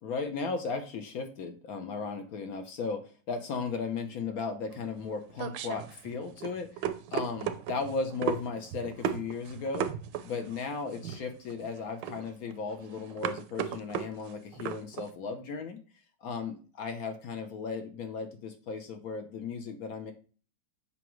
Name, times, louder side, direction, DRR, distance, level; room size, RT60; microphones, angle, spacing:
voice 1, 0.0-6.8 7.1-9.9 10.2-15.8 16.2-20.1, left 4 dB, 60° left, 6 dB, 1.1 m, -36 dB
sound 1, 4.7-15.1, right 9 dB, 75° right, 1.2 m, -36 dB
7.1 x 4.9 x 3.1 m, 0.38 s
omnidirectional pair, 2.1 m